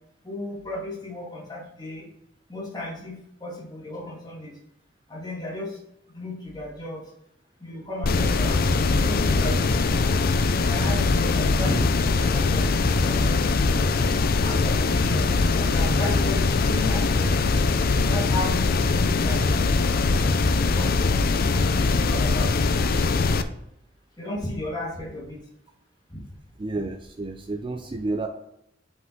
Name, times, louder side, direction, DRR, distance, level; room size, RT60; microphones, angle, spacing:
voice 1, 0.2-2.1 2.5-4.6 5.1-5.8 6.1-7.1 7.6-10.2 10.7-14.0 14.4-17.3 18.1-20.2 20.7-20.9 21.4-22.5 24.2-25.4 26.1-26.2, left 1 dB, 20° left, -4 dB, 2.1 m, -34 dB
sound 1, 8.0-23.4, left 3 dB, 50° left, 0.5 m, -22 dB
voice 2, 26.6-28.3, right 2 dB, 25° right, 5 dB, 0.4 m, -30 dB
5.6 x 5.3 x 3.8 m, 0.77 s
head